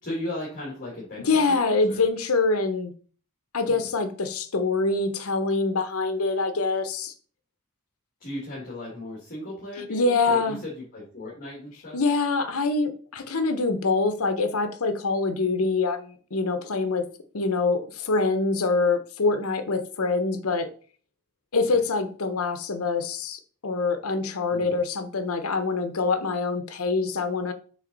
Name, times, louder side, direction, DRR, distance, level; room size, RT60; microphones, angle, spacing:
voice 1, 0.0-2.0 3.7-3.8 8.2-12.0 21.6-21.8 24.5-24.7, left 1 dB, 40° left, 2.0 m, -37 dB
voice 2, 1.2-2.9 3.5-7.1 9.8-10.6 11.9-17.0 17.3-20.7 21.5-27.5, left 3 dB, 85° left, 0.9 m, -25 dB
6.5 x 3.8 x 3.9 m
head